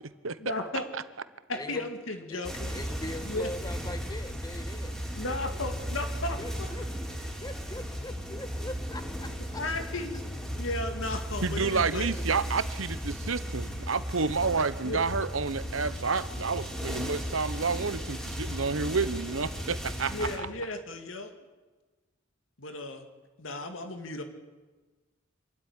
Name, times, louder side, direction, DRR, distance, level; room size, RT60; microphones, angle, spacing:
voice 1, 0.4-0.9 1.5-2.7 3.2-3.5 5.1-6.7 9.6-10.2 10.6-12.2 14.8-15.0 20.1-21.3 22.6-23.0 23.4-24.2, left 2 dB, 80° left, 6 dB, 2.4 m, -35 dB
voice 2, 1.5-1.9 2.3-5.0 5.5-5.6 6.4-6.9 7.3-9.6, left 1 dB, 20° left, 9 dB, 1.6 m, -41 dB
sound 1, 2.4-20.4, equal, 5° left, 4.1 m, -36 dB
voice 3, 11.4-20.3, right 4 dB, 90° right, 14 dB, 1.1 m, -30 dB
26.5 x 13.5 x 10.0 m, 1.3 s
head